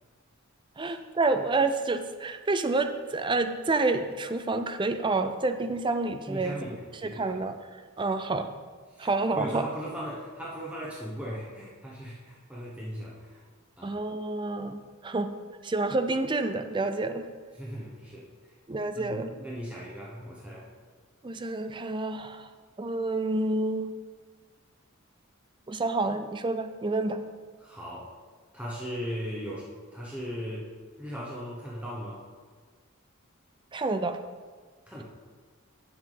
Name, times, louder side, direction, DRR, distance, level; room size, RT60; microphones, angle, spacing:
voice 1, 0.8-6.6 7.0-8.5 9.0-9.7 13.8-15.3 15.6-17.2 18.7-19.3 21.2-22.5 22.8-23.9 25.7-27.2 33.7-34.2, right 3 dB, 25° right, 9 dB, 0.5 m, -28 dB
voice 2, 6.3-7.3 8.9-9.1 9.3-13.4 13.8-14.0 17.6-18.3 18.9-20.7 27.6-28.1 28.5-30.7 31.0-32.2 34.9-35.0, equal, 5° right, -5 dB, 1.0 m, -38 dB
9.4 x 7.7 x 3.9 m, 1.5 s
head